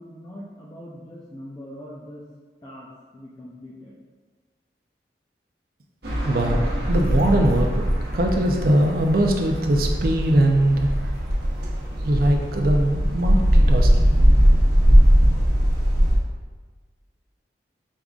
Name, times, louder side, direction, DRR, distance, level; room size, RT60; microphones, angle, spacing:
voice 1, 0.0-2.2 2.6-4.0, equal, 20° left, -6 dB, 0.5 m, -41 dB
sound 1, 6.0-16.2, equal, 75° right, 1.0 m, -20 dB
voice 2, 6.2-7.8 8.1-10.9 12.0-14.1, right 1 dB, 55° right, 2 dB, 0.5 m, -21 dB
5.3 x 3.6 x 2.4 m, 1.4 s
head